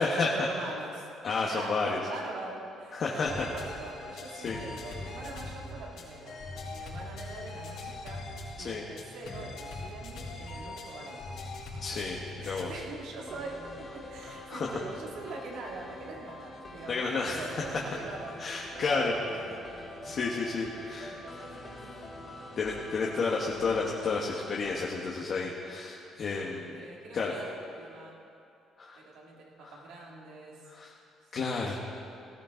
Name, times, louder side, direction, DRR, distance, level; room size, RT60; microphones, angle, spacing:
voice 1, 0.0-1.1 1.4-8.2 8.6-11.3 12.4-18.4 18.7-19.7 20.1-20.3 20.7-21.8 22.1-22.3 22.7-22.9 26.8-28.2 29.0-30.7 31.6-31.8, right 3 dB, 80° right, -2 dB, 2.7 m, -43 dB
voice 2, 1.2-2.0 2.9-3.5 4.4-4.6 8.6-8.8 11.8-12.2 12.4-12.8 14.5-14.7 16.9-17.4 18.4-19.1 20.0-21.2 22.6-26.9 27.1-27.4 28.8-29.0 29.6-29.7 30.7-30.9 31.3-31.8, left 4 dB, 45° left, -2 dB, 1.4 m, -31 dB
sound 1, 3.3-12.9, left 2 dB, 75° left, 4.2 m, -41 dB
sound 2, 13.2-24.8, left 1 dB, 25° left, 3.0 m, -45 dB
18.5 x 14.5 x 3.9 m, 2.6 s
cardioid pair, 130°, 0 cm